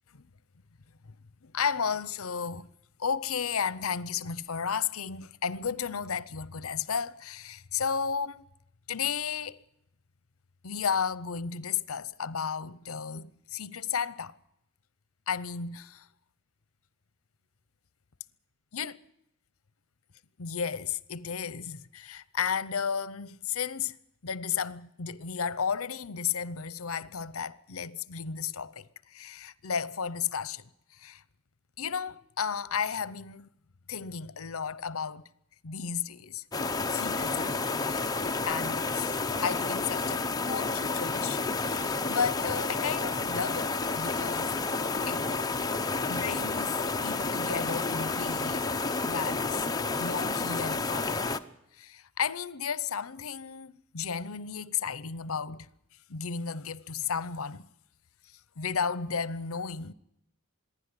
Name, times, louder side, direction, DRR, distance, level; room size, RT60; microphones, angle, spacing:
voice 1, 1.4-2.7 3.0-8.4 8.9-9.6 10.6-14.3 15.3-16.1 18.7-19.0 20.4-24.0 24.2-31.2 31.8-33.5 33.9-35.3 35.6-36.4 36.9-38.1 38.5-45.2 46.1-48.7 49.1-49.7 50.0-51.1 51.7-55.7 56.1-57.6 58.6-59.9, left 6 dB, 70° left, 0.8 m, -33 dB
sound 1, 36.5-51.4, left 3 dB, 15° left, 0.8 m, -30 dB
26.0 x 11.0 x 9.8 m
head